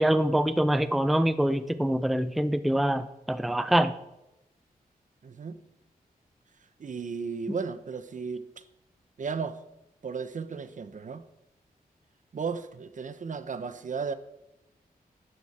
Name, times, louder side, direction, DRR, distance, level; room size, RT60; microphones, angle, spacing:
voice 1, 0.0-3.9, right 1 dB, ahead, 0.5 m, -25 dB
voice 2, 5.2-5.6 6.8-8.6 9.2-9.6 10.0-11.2 12.3-14.1, right 5 dB, 55° right, 0.9 m, -34 dB
12.0 x 11.5 x 4.3 m
wide cardioid pair, 105°, 16 cm